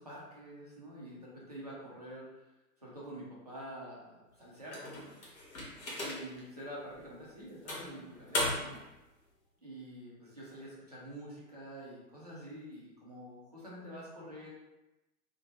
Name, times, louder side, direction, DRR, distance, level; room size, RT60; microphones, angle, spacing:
voice 1, 0.0-2.4 2.8-5.1 6.0-8.8 9.6-14.5, equal, 30° right, -6 dB, 0.4 m, -47 dB
sound 1, 4.7-6.4 7.0-7.1 7.7-8.9, left 1 dB, 60° left, 0.9 m, -37 dB
2.4 x 2.1 x 2.8 m, 1.0 s
figure-of-eight pair, 120°, 48 cm